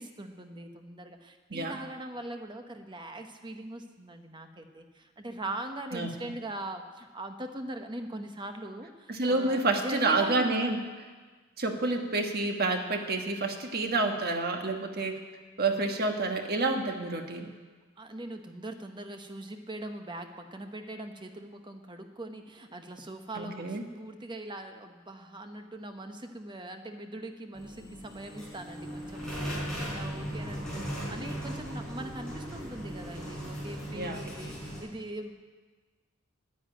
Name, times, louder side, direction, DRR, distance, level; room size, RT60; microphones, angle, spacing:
voice 1, 0.0-10.6 18.0-35.3, right 1 dB, 20° right, 6 dB, 0.9 m, -41 dB
voice 2, 9.1-10.8 11.6-15.2 15.6-17.5 23.3-23.8 33.9-34.2, right 3 dB, 45° right, 4 dB, 1.4 m, -29 dB
sound 1, 27.5-34.8, equal, 5° left, 5.0 m, -38 dB
10.5 x 9.5 x 8.8 m, 1.4 s
head